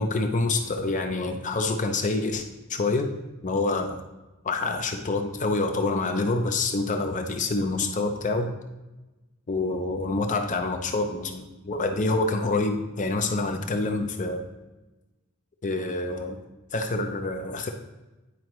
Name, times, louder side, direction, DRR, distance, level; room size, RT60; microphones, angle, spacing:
voice 1, 0.0-2.4 2.7-3.1 3.4-4.0 4.4-8.5 9.5-14.4 15.6-16.4 16.7-17.7, left 3 dB, 35° left, 5 dB, 0.6 m, -27 dB
9.5 x 4.9 x 3.0 m, 1.1 s
head